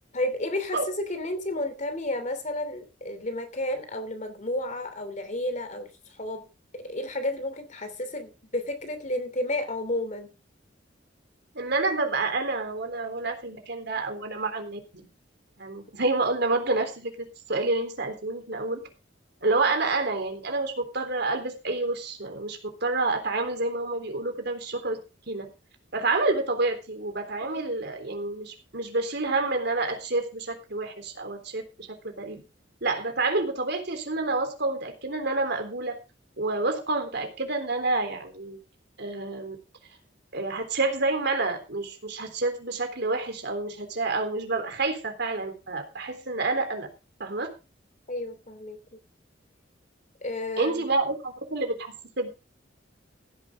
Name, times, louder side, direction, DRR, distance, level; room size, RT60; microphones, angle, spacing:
voice 1, 0.1-6.5 6.7-10.3 19.6-19.7 27.4-27.6 48.1-48.8 50.2-50.9, left 1 dB, 40° left, 3.0 m, -32 dB
voice 2, 11.6-15.1 15.6-18.8 19.4-25.0 25.3-25.5 25.9-32.4 32.8-36.0 36.4-38.6 39.0-39.6 40.3-46.9 47.2-47.5 50.6-52.3, right 3 dB, 60° right, 3.6 m, -28 dB
16.0 x 10.5 x 3.7 m
head